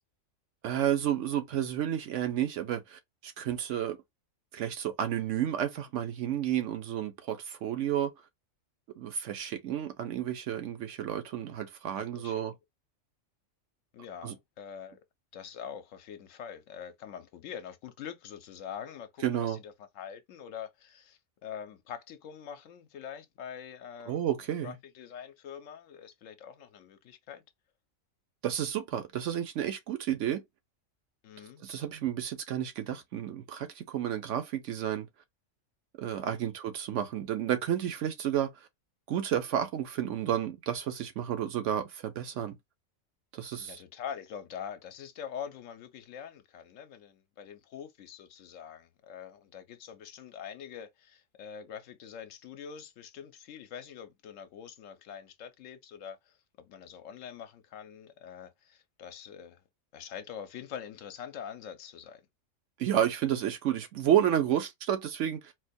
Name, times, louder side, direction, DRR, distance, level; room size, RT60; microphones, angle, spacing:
voice 1, 0.6-4.0 4.5-8.1 9.0-12.5 14.2-14.3 19.2-19.6 24.1-24.8 28.4-30.4 31.6-35.1 36.0-38.7 39.1-42.6 43.3-43.8 62.8-65.5, right 10 dB, 65° right, 1.0 m, -31 dB
voice 2, 12.0-12.4 13.9-15.0 15.3-24.2 24.6-27.4 31.2-31.6 36.2-36.5 43.6-59.6 59.9-62.2, left 8 dB, 70° left, 1.0 m, -44 dB
4.2 x 2.2 x 2.6 m
omnidirectional pair, 1.4 m